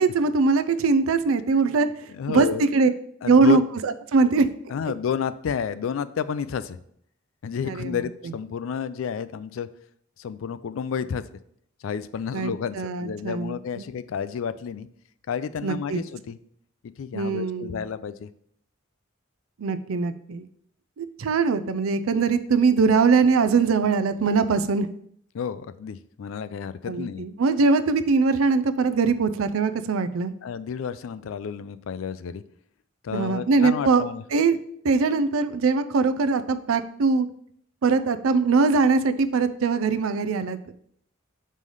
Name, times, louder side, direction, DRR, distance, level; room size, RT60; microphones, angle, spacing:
voice 1, 0.0-1.9 2.3-2.9 3.3-4.5 7.6-8.1 12.3-13.8 15.6-16.0 17.1-17.8 19.6-20.5 21.0-24.9 26.9-30.3 33.1-34.0 34.3-34.6 34.8-37.3 37.8-40.6, right 4 dB, 80° right, 12 dB, 0.4 m, -22 dB
voice 2, 2.1-2.6 3.2-3.6 4.7-6.8 7.4-9.7 10.2-11.2 11.8-14.9 15.3-16.4 17.0-18.3 25.3-27.3 30.4-32.4 33.0-34.2, left 7 dB, 70° left, 14 dB, 0.3 m, -30 dB
5.4 x 3.2 x 5.4 m, 0.67 s
head